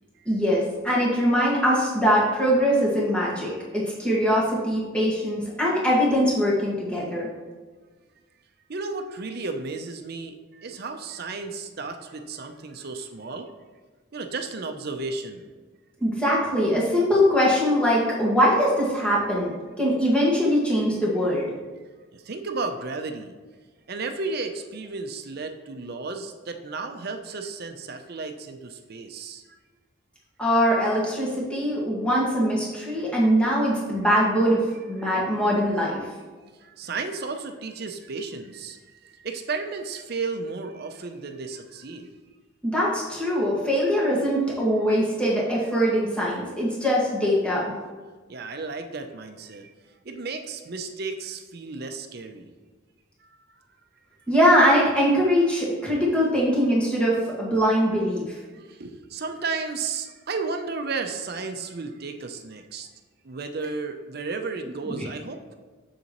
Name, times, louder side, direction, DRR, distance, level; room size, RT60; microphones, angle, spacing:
voice 1, 0.2-7.3 16.0-19.5 19.8-21.4 30.4-36.0 42.6-47.6 54.3-58.3 64.9-65.1, equal, 5° left, -6 dB, 1.6 m, -22 dB
voice 2, 8.7-13.5 14.1-15.5 22.1-23.4 23.9-29.4 36.6-42.1 48.3-49.7 50.0-52.5 53.2-53.3 58.5-62.9 63.2-65.4, right 4 dB, 50° right, 7 dB, 0.6 m, -33 dB
7.3 x 6.7 x 3.0 m, 1.4 s
head